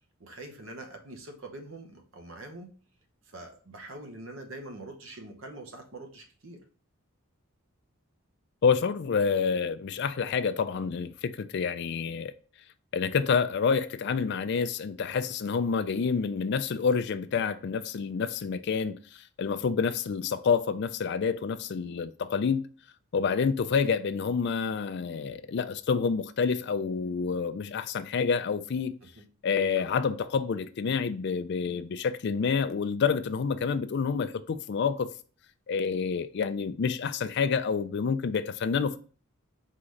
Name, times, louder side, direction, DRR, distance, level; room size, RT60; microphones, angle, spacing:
voice 1, 0.2-2.7 3.3-6.6 29.2-29.3, right 2 dB, 65° right, 0.9 m, -44 dB
voice 2, 8.6-12.3 12.9-22.6 23.1-28.9 29.4-35.1 35.7-39.0, left 5 dB, 50° left, 0.3 m, -28 dB
3.9 x 3.8 x 3.1 m
head